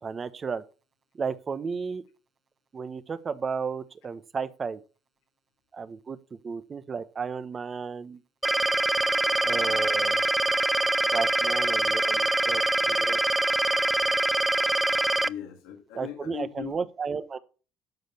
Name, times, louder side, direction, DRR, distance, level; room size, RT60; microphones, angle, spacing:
voice 1, 0.0-0.6 1.2-2.0 2.7-4.8 5.7-8.2 9.4-10.2 11.1-13.2 15.9-17.4, right 5 dB, 35° right, 1.0 m, -33 dB
sound 1, 8.4-15.3, right 2 dB, 10° right, 0.5 m, -24 dB
voice 2, 9.1-10.0 15.2-16.8, left 10 dB, 85° left, 2.0 m, -41 dB
12.0 x 5.2 x 6.9 m
supercardioid pair, 90°, 0 cm